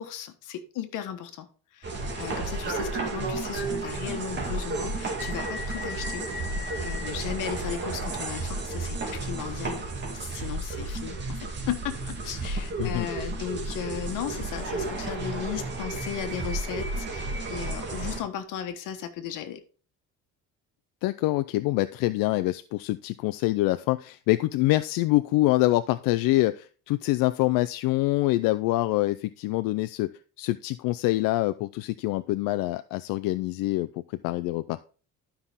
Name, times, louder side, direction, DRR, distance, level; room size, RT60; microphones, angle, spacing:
voice 1, 0.0-1.5 1.7-6.3 6.6-19.6, left 9 dB, 70° left, 7 dB, 1.5 m, -36 dB
sound 1, 1.8-18.2, right 2 dB, 35° right, 2.4 m, -32 dB
voice 2, 21.0-30.1 30.4-33.9 34.2-34.8, left 18 dB, 90° left, 13 dB, 0.5 m, -25 dB
12.0 x 5.7 x 3.6 m, 0.38 s
cardioid pair, 150°, 33 cm